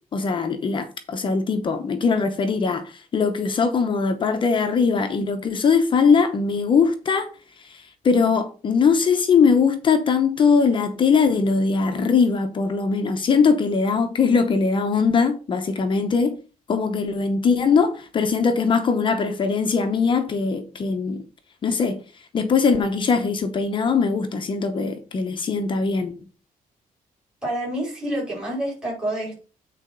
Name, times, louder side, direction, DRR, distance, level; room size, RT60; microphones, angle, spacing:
voice 1, 0.1-7.3 7.6-16.4 16.7-21.2 21.6-22.0 22.3-26.1, left 5 dB, 35° left, 0.8 m, -21 dB
voice 2, 27.4-29.4, right 1 dB, 5° right, 5.1 m, -28 dB
8.8 x 4.1 x 5.5 m
cardioid pair, 175°, 15 cm